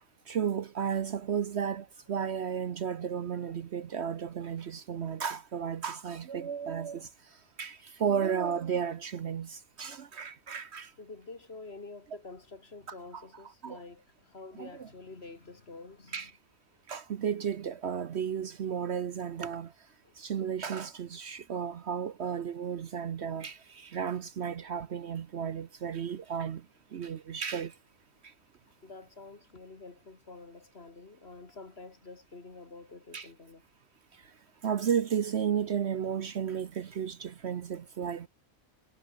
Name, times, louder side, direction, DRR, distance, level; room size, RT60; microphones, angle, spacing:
voice 1, 0.3-10.9 13.1-13.2 13.6-13.8 14.6-14.9 16.1-16.3 16.9-19.7 20.2-26.7 26.9-27.8 28.2-28.3 33.1-33.3 34.1-34.3 34.6-38.3, right 7 dB, 55° right, 1.0 m, -33 dB
voice 2, 11.0-16.3 20.0-20.1 28.8-33.6, left 3 dB, 50° left, 2.7 m, -48 dB
omnidirectional pair, 1.4 m